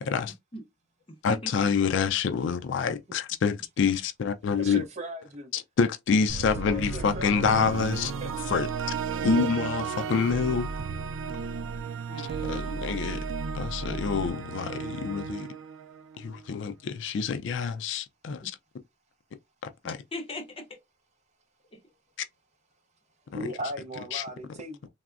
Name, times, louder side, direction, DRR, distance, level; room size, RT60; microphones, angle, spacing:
voice 1, 0.0-0.3 1.2-4.8 5.5-8.1 8.5-8.7 9.2-10.7 12.5-13.2 13.5-15.5 16.2-18.5 19.8-20.0 24.1-24.2, left 6 dB, 65° left, 0.4 m, -27 dB
voice 2, 1.1-1.7 12.1-12.8 19.8-20.8 21.7-21.8, left 1 dB, 30° left, 0.7 m, -40 dB
voice 3, 4.5-5.5 6.7-7.4 8.2-8.6 23.3-24.9, right 1 dB, 35° right, 0.6 m, -37 dB
sound 1, 6.3-16.5, right 5 dB, 85° right, 0.4 m, -34 dB
3.3 x 2.0 x 2.4 m
head